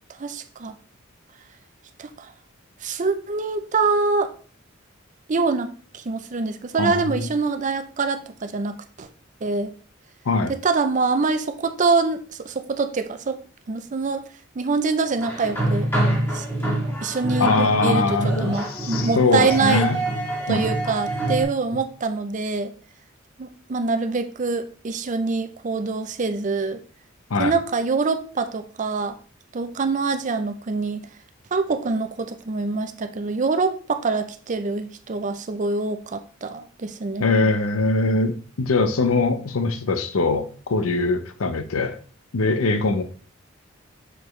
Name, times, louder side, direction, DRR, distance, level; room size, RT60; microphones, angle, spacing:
voice 1, 0.2-0.8 2.0-2.3 2.8-4.3 5.3-5.7 5.9-9.1 9.4-9.7 10.5-13.4 13.7-14.2 14.6-15.9 16.3-16.5 17.0-19.9 20.5-22.7 23.4-26.8 27.4-29.2 29.5-31.1 31.5-37.3, right 4 dB, 35° right, 0.5 m, -25 dB
voice 2, 6.8-7.3 10.3-10.5 17.4-20.0 20.5-20.6 27.3-27.6 37.2-42.0 42.3-43.0, left 3 dB, 85° left, 0.7 m, -22 dB
sound 1, 15.2-21.4, right 1 dB, 10° left, 1.7 m, -25 dB
6.6 x 4.6 x 3.1 m
head